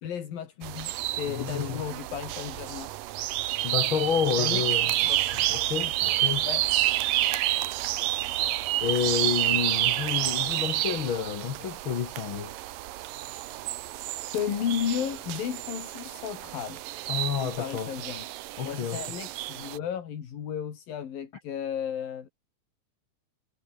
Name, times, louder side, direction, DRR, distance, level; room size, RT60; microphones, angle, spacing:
voice 1, 0.0-2.9 4.4-4.7 5.0-5.2 6.4-6.7 14.3-16.8 17.4-18.3 18.7-22.3, left 8 dB, 75° left, 4.4 m, -34 dB
sound 1, 0.6-19.8, right 15 dB, 75° right, 2.6 m, -29 dB
voice 2, 1.3-1.8 3.6-4.9 5.3-6.5 8.8-12.5 17.1-17.9 18.6-19.0, left 7 dB, 50° left, 1.5 m, -30 dB
omnidirectional pair, 4.1 m